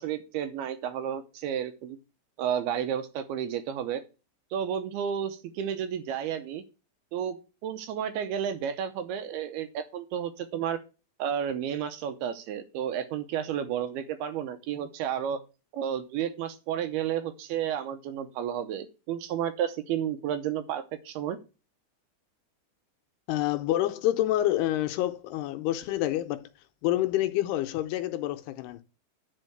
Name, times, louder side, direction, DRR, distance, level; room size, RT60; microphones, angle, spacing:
voice 1, 0.0-2.0 2.4-4.0 4.5-6.6 7.1-10.8 11.2-15.4 15.7-21.4, right 9 dB, 75° right, 2.6 m, -32 dB
voice 2, 23.3-26.5 26.8-28.8, left 14 dB, 80° left, 2.5 m, -27 dB
9.9 x 4.5 x 7.8 m
omnidirectional pair, 4.9 m